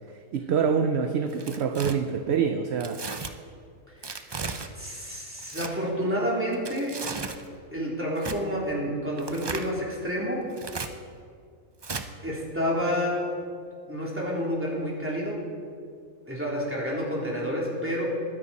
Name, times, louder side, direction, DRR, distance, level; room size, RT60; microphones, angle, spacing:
voice 1, 0.3-3.0, right 6 dB, 60° right, 7 dB, 0.8 m, -25 dB
Tearing, 1.3-1.9 2.8-3.3 4.0-4.7 5.4-5.7 6.5-7.4 8.2-8.4 9.2-9.7 10.5-10.9 11.8-12.0, right 4 dB, 45° right, 0.3 m, -35 dB
voice 2, 3.9-4.2 4.7-7.0 7.7-10.5 12.2-13.3 13.9-15.4 16.2-18.0, equal, 10° right, -5 dB, 3.2 m, -29 dB
21.0 x 10.0 x 4.2 m, 2.2 s
omnidirectional pair, 1.4 m